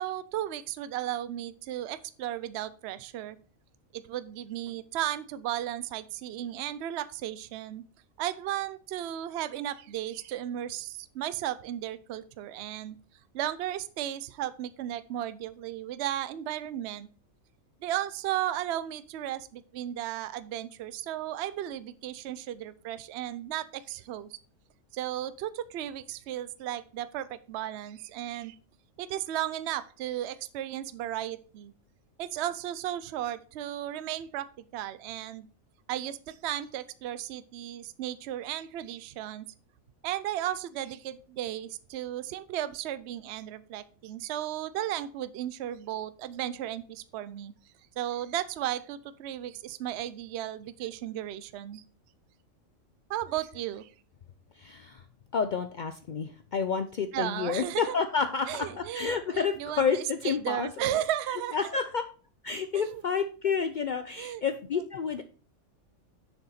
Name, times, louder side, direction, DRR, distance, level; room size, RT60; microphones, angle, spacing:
voice 1, 0.0-3.4 3.9-7.8 8.2-13.0 13.3-17.1 17.8-24.3 24.9-28.6 29.0-31.7 32.2-35.5 35.9-39.5 40.0-47.5 48.0-51.8 53.1-53.9 57.1-58.0 58.5-61.8 62.7-63.0 64.2-64.4 64.7-64.8, right 12 dB, 65° right, 14 dB, 0.7 m, -35 dB
voice 2, 54.6-55.0 55.3-60.7 61.5-62.0 62.4-65.2, left 6 dB, 85° left, 9 dB, 0.4 m, -30 dB
6.9 x 6.7 x 4.1 m, 0.39 s
omnidirectional pair, 1.4 m